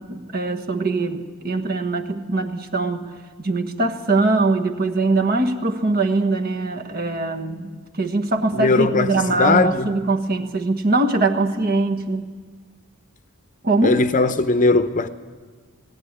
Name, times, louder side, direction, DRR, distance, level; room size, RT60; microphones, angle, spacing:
voice 1, 0.0-3.0 3.4-12.3 13.6-14.0, right 2 dB, 45° right, 1.5 m, -22 dB
voice 2, 8.5-9.9 13.8-15.1, left 3 dB, 35° left, 0.8 m, -19 dB
18.0 x 17.5 x 9.9 m
head